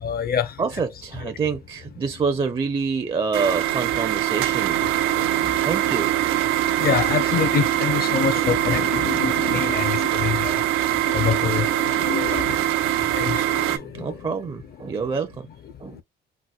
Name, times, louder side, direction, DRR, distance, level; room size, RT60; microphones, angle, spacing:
voice 1, 0.0-0.8 1.1-1.3 4.8-5.7 6.6-12.6 13.1-14.4 15.9-16.0, left 8 dB, 45° left, 0.6 m, -27 dB
voice 2, 0.6-4.8 5.2-5.3 5.6-6.4 12.6-12.7 13.7-15.5 15.8-16.0, right 5 dB, 25° right, 0.5 m, -27 dB
sound 1, 3.3-13.8, right 13 dB, 80° right, 0.5 m, -23 dB
4.1 x 2.0 x 2.3 m
cardioid pair, 95°, 21 cm